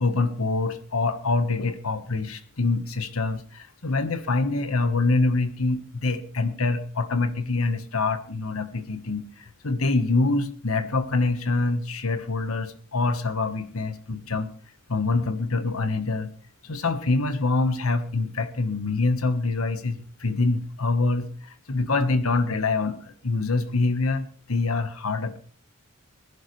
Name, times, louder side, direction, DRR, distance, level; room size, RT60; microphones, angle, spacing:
voice 1, 0.0-14.5 14.9-16.3 16.6-25.4, left 3 dB, 85° left, 11 dB, 1.3 m, -25 dB
20.5 x 11.5 x 3.3 m, 0.42 s
head